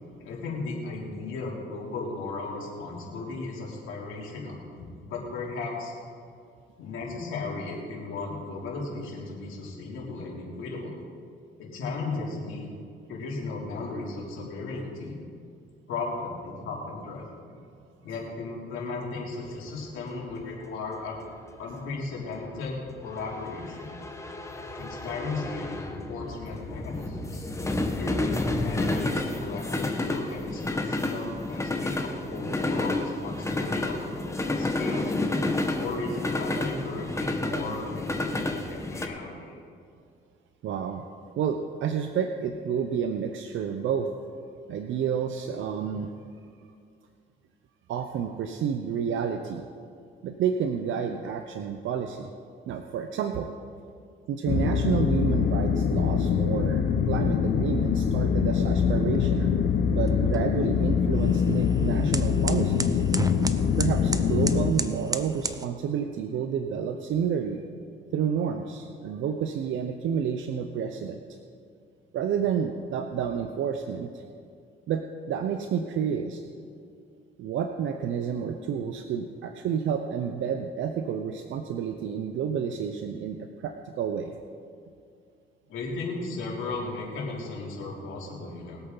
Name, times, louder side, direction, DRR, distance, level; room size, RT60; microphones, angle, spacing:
voice 1, 0.2-5.9 6.8-11.0 11.6-12.7 13.1-15.2 15.9-17.2 18.0-21.2 21.6-23.9 24.7-27.5 27.9-35.1 35.8-39.6 85.7-88.8, left 3 dB, 85° left, -3 dB, 3.2 m, -35 dB
sound 1, 19.6-39.1, left 2 dB, 15° left, 1.3 m, -31 dB
voice 2, 40.6-44.1 44.7-46.1 47.9-49.7 50.2-52.3 52.7-53.5 54.3-59.5 59.9-63.0 63.8-67.6 68.1-71.2 72.1-74.2 74.9-76.4 77.4-84.4, right 7 dB, 75° right, 6 dB, 0.7 m, -30 dB
sound 2, 54.5-64.7, left 7 dB, 65° left, 0.8 m, -24 dB
sound 3, 58.9-65.6, right 3 dB, 20° right, 0.7 m, -36 dB
22.0 x 8.2 x 4.0 m, 2.3 s
cardioid pair, 90°, 20 cm